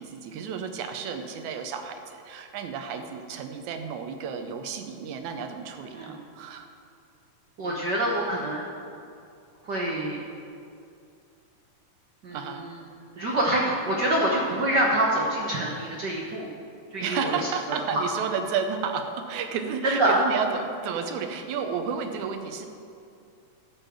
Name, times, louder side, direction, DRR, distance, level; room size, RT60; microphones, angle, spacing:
voice 1, 0.0-6.7 12.3-12.7 17.0-22.7, right 6 dB, 85° right, 6 dB, 2.2 m, -32 dB
voice 2, 7.6-8.7 9.6-10.2 12.2-12.7 13.2-16.5 16.9-17.3 17.9-18.0 19.8-20.2, right 1 dB, 60° right, -2 dB, 1.1 m, -26 dB
12.5 x 5.4 x 7.3 m, 2.5 s
omnidirectional pair, 3.3 m